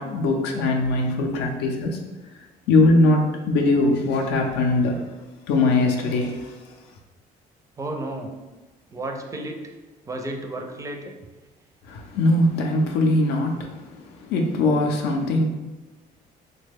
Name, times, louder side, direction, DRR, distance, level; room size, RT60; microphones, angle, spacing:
voice 1, 0.0-2.0 2.7-5.0 5.5-6.5 11.9-13.7 14.2-15.4, left 2 dB, 85° left, 1 dB, 0.5 m, -21 dB
voice 2, 7.8-8.3 8.9-9.7 10.1-11.1, right 1 dB, 20° right, 3 dB, 0.4 m, -32 dB
3.1 x 2.1 x 3.4 m, 1.2 s
cardioid pair, 110°, 17 cm